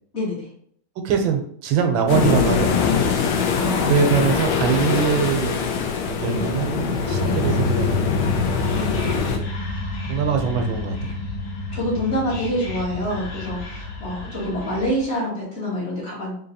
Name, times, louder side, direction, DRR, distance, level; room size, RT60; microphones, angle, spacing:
voice 1, 0.1-0.5 3.5-4.2 6.3-6.5 7.2-7.4 8.7-9.1 11.7-16.3, equal, 40° left, -5 dB, 1.5 m, -27 dB
voice 2, 1.0-3.0 3.9-5.6 6.1-8.4 10.0-11.3, right 6 dB, 85° right, 5 dB, 1.4 m, -23 dB
sound 1, 2.1-9.4, left 6 dB, 85° left, 1.4 m, -23 dB
sound 2, 7.0-14.3, left 1 dB, 70° right, 0.7 m, -29 dB
Whispering, 8.2-15.1, left 4 dB, 70° left, 0.9 m, -36 dB
3.9 x 2.8 x 2.7 m, 0.62 s
omnidirectional pair, 2.1 m